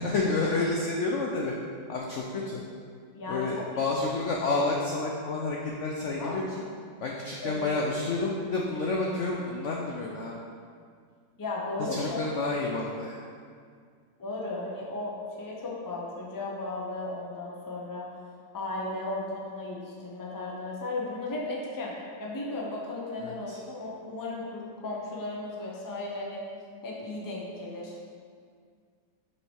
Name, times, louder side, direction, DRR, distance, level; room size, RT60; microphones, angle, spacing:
voice 1, 0.0-1.5 1.9-2.6 3.3-6.4 7.0-10.3 11.8-13.2 23.2-23.6, left 3 dB, 70° left, -1 dB, 0.7 m, -29 dB
voice 2, 11.4-12.5 14.2-18.1 18.5-21.9 22.2-26.4 26.8-28.0, left 2 dB, 25° left, -3 dB, 0.5 m, -35 dB
6.5 x 4.3 x 4.6 m, 2.1 s
omnidirectional pair, 1.9 m